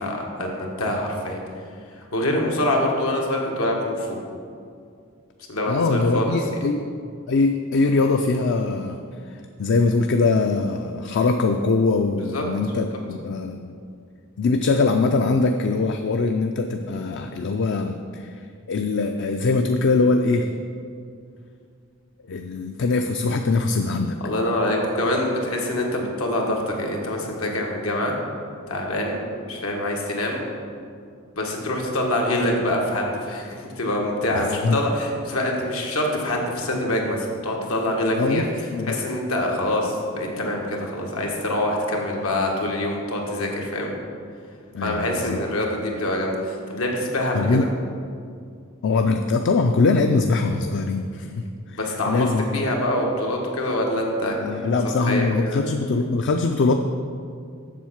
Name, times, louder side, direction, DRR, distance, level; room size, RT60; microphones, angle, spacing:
voice 1, 0.0-1.4 2.1-4.2 5.5-6.4 12.3-12.4 24.2-28.1 28.7-30.4 31.3-38.4 38.9-43.9 44.8-47.7 51.7-54.7 55.1-55.6, left 1 dB, 90° left, 0 dB, 1.5 m, -25 dB
voice 2, 5.7-6.9 7.3-13.8 14.4-18.4 18.7-20.5 22.3-24.2 34.3-34.8 38.2-39.0 44.7-45.4 47.3-47.6 48.8-52.6 54.4-56.7, left 3 dB, 60° left, 5 dB, 0.4 m, -22 dB
7.5 x 7.1 x 5.8 m, 2.3 s
head